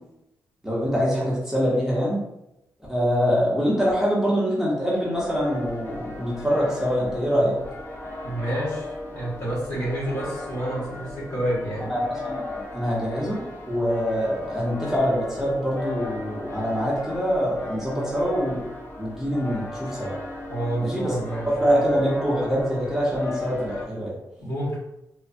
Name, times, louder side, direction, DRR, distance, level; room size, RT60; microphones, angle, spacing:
voice 1, 0.6-2.2 2.9-7.5 11.9-18.6 19.0-20.1 20.8-21.1 21.4-24.1, equal, 5° right, -6 dB, 0.7 m, -24 dB
sound 1, 5.1-23.9, left 2 dB, 30° left, 0.5 m, -37 dB
voice 2, 8.2-11.9 20.5-21.5 24.4-24.8, right 1 dB, 50° left, -7 dB, 1.5 m, -29 dB
3.1 x 2.0 x 2.5 m, 0.89 s
wide cardioid pair, 105°, 7 cm